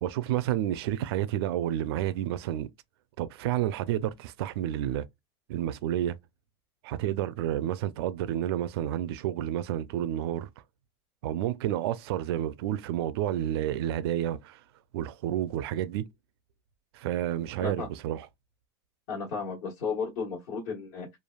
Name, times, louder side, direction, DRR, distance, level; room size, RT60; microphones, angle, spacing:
voice 1, 0.0-2.7 3.2-5.1 5.5-6.2 6.8-10.5 11.2-14.6 14.9-16.1 16.9-18.3, right 12 dB, 70° right, 0.4 m, -30 dB
voice 2, 17.6-17.9 19.1-21.2, left 5 dB, 55° left, 1.3 m, -34 dB
3.2 x 2.3 x 2.2 m
supercardioid pair, 155°, 13 cm